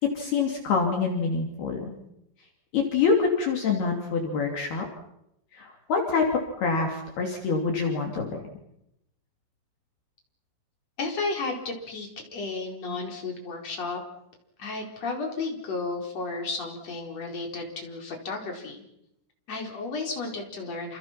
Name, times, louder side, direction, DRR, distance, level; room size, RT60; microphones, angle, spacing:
voice 1, 0.2-1.9 2.7-4.9 5.5-6.3 6.5-8.4, left 4 dB, 55° left, 2 dB, 4.4 m, -26 dB
voice 2, 11.0-14.0 14.6-18.8 19.5-21.0, left 3 dB, 35° left, 1 dB, 5.2 m, -33 dB
29.0 x 27.5 x 6.0 m, 0.81 s
omnidirectional pair, 5.8 m